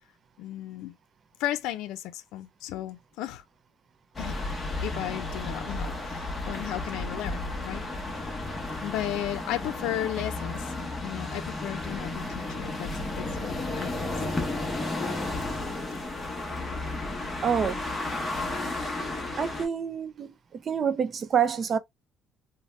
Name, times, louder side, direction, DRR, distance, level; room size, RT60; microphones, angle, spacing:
voice 1, 0.4-1.0 1.4-3.4 4.2-4.4 4.8-7.9 8.8-12.9 13.2-14.1 15.0-15.1 16.6-16.8 17.1-17.4 18.4-18.5, left 13 dB, 85° left, 0.4 m, -35 dB
sound 1, 4.1-19.6, left 2 dB, 15° left, 0.8 m, -33 dB
voice 2, 17.4-17.9 19.3-21.8, right 7 dB, 30° right, 0.4 m, -27 dB
2.7 x 2.1 x 3.1 m
cardioid pair, 165°, 0 cm